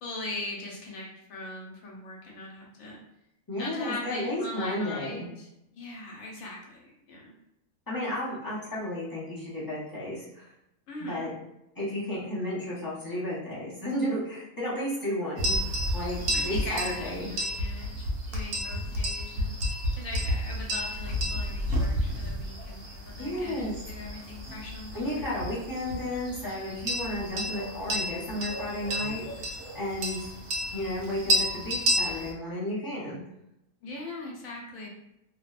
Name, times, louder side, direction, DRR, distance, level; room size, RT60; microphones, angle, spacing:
voice 1, 0.0-3.0 3.6-7.3 10.9-11.3 16.3-25.3 33.8-34.9, left 2 dB, 80° left, -2 dB, 1.1 m, -40 dB
voice 2, 3.5-5.3 7.9-10.5 11.0-11.3 11.8-15.6 15.9-17.3 23.2-23.7 24.9-29.5 29.7-30.3 30.7-33.2, left 1 dB, 25° left, -9 dB, 0.5 m, -33 dB
sound 1, 15.4-32.3, equal, 75° right, 0.9 m, -31 dB
2.7 x 2.0 x 2.3 m, 0.85 s
omnidirectional pair, 1.4 m